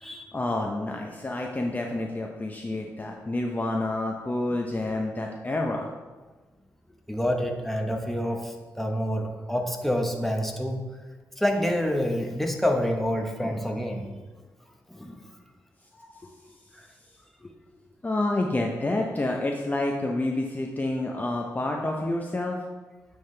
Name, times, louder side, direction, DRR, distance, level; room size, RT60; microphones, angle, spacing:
voice 1, 0.0-5.9 18.0-22.6, left 2 dB, 25° left, 1 dB, 0.6 m, -28 dB
voice 2, 7.1-10.8 11.4-14.0 14.9-15.2 16.0-16.1 16.7-16.9, equal, 5° left, 2 dB, 1.0 m, -27 dB
9.2 x 3.5 x 3.3 m, 1.3 s
cardioid pair, 55°, 7 cm